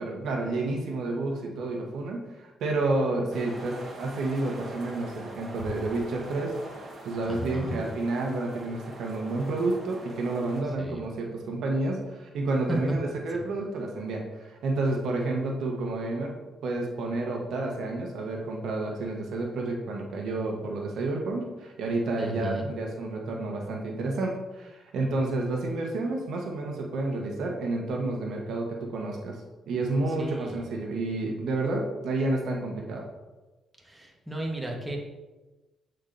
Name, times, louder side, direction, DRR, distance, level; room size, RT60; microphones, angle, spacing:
voice 1, 0.0-16.3 16.6-29.4 29.7-33.0, right 2 dB, 75° right, 0 dB, 1.1 m, -30 dB
sound 1, 3.3-10.6, right 1 dB, 45° right, 1.5 m, -44 dB
voice 2, 7.3-7.8 10.8-11.0 22.2-22.7 30.2-30.5 33.9-35.0, right 1 dB, 10° right, -1 dB, 1.2 m, -35 dB
8.3 x 4.4 x 2.6 m, 1.1 s
cardioid pair, 90°, 0 cm